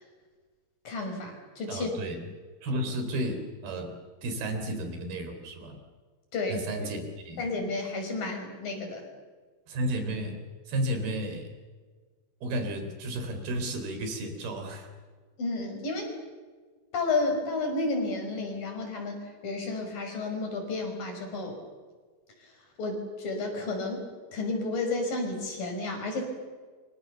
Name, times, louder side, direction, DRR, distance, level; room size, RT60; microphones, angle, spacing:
voice 1, 0.9-1.9 6.3-6.9 7.4-9.1 15.4-16.2 16.9-19.2 19.4-21.6 22.8-24.0 24.3-26.2, left 3 dB, 65° left, 3 dB, 7.2 m, -31 dB
voice 2, 1.7-2.3 2.6-3.9 4.2-5.8 6.5-7.5 9.7-10.4 10.7-11.5 12.4-14.9, right 1 dB, 90° right, 6 dB, 5.7 m, -33 dB
28.0 x 25.0 x 7.0 m, 1.4 s
omnidirectional pair, 4.3 m